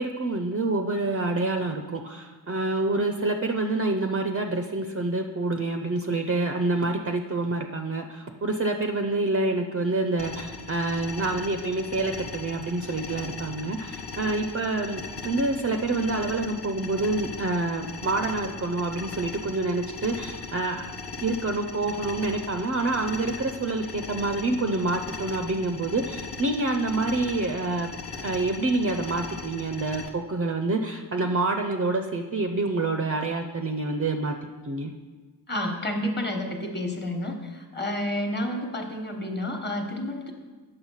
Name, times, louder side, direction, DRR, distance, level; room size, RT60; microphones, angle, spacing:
voice 1, 0.0-20.8 21.2-27.9 28.1-34.4 34.6-34.9, right 2 dB, 30° right, 5 dB, 0.5 m, -27 dB
sound 1, 10.2-30.1, left 4 dB, 60° left, 0.9 m, -39 dB
voice 2, 35.5-40.3, left 1 dB, 20° left, 3 dB, 1.2 m, -30 dB
8.8 x 6.7 x 5.5 m, 1.4 s
wide cardioid pair, 140°, 46 cm